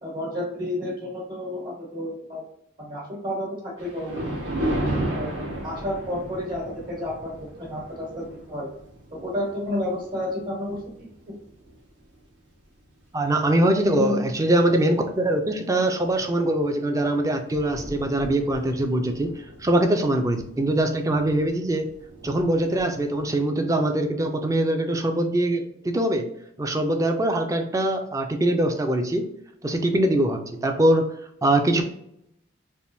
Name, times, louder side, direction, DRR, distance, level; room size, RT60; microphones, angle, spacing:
voice 1, 0.0-2.4 2.8-4.1 4.5-4.7 5.1-8.7 9.1-11.3 13.8-14.3, left 1 dB, 50° right, -6 dB, 1.3 m, -31 dB
Thunder, 3.8-12.3 12.8-13.1 13.8-13.9 14.2-14.3 16.5-16.7 17.0-17.1 17.3-23.3, right 1 dB, 65° right, 1.0 m, -35 dB
voice 2, 13.1-21.9 22.2-26.3 26.6-29.3 29.6-31.1 31.4-31.9, right 1 dB, 15° right, 5 dB, 0.4 m, -23 dB
3.4 x 2.5 x 2.6 m, 0.75 s
head